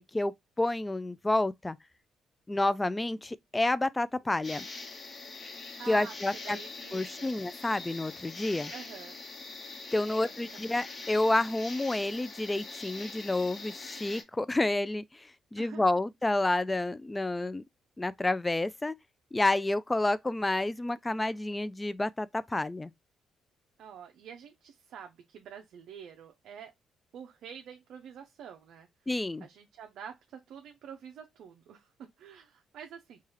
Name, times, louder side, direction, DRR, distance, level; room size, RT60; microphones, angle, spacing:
voice 1, 0.0-1.8 2.5-4.6 5.9-6.6 6.9-8.7 9.9-17.6 18.0-19.0 19.3-22.9 29.1-29.5, left 2 dB, 15° left, 0.3 m, -29 dB
sound 1, 4.4-14.2, left 3 dB, 40° left, 0.9 m, -43 dB
voice 2, 5.8-7.3 8.7-9.2 10.1-10.3 10.8-10.9 15.6-16.0 23.8-26.7 27.1-28.9 29.4-33.2, right 8 dB, 75° right, 0.5 m, -47 dB
4.6 x 2.3 x 3.0 m
cardioid pair, 90°, 0 cm